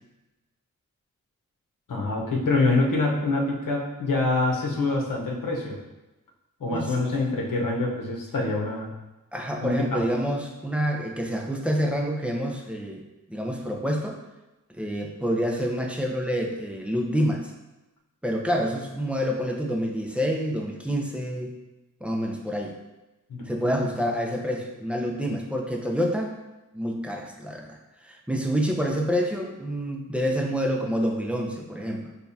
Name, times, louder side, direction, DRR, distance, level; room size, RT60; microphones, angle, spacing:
voice 1, 1.9-5.8 6.6-8.9 9.6-10.0 23.3-23.9, left 2 dB, 75° left, -2 dB, 1.0 m, -25 dB
voice 2, 9.3-13.0 13.3-14.2 14.8-17.4 18.2-21.5 22.0-22.7 23.5-26.3 26.7-27.8 28.0-32.1, equal, 5° right, 1 dB, 0.5 m, -27 dB
6.6 x 2.3 x 2.7 m, 1.0 s
wide cardioid pair, 105°, 33 cm